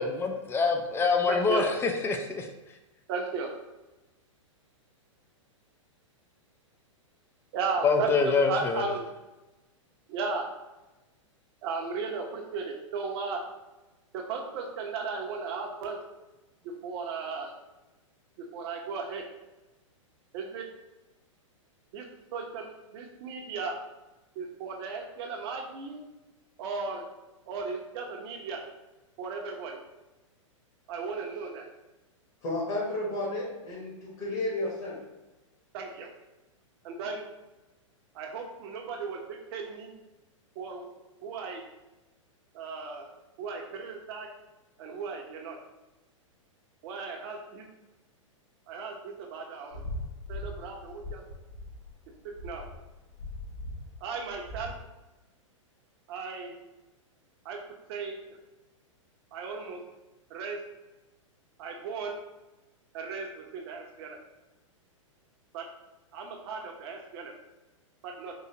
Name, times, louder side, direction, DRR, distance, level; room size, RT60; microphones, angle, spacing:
voice 1, 0.0-1.7 2.0-2.5 7.8-8.8, left 4 dB, 15° left, 0.4 m, -25 dB
voice 2, 1.3-1.7 3.1-3.5 7.5-9.0 10.1-10.5 11.6-13.4 14.1-16.0 16.6-17.5 18.4-19.2 20.3-20.7 21.9-22.0 22.3-23.8 24.3-26.0 26.6-27.1 27.5-28.6 29.2-29.8 30.9-31.7 35.7-36.1 36.8-37.2 38.1-39.9 40.5-40.9 41.2-41.6 42.5-43.1 43.4-44.3 44.8-45.6 46.8-47.7 48.7-49.8 50.3-51.2 52.4-52.7 54.0-54.7 56.1-56.6 57.4-57.6 57.9-58.2 59.3-59.8 60.3-60.6 61.6-62.2 62.9-64.2 65.5-65.6 66.1-67.3 68.0-68.3, right 4 dB, 50° right, 0.8 m, -35 dB
voice 3, 32.4-35.0, left 2 dB, 40° left, 1.2 m, -32 dB
sound 1, 49.7-54.8, left 1 dB, 70° left, 1.1 m, -40 dB
3.9 x 2.8 x 2.8 m
hypercardioid pair, 110°, 17 cm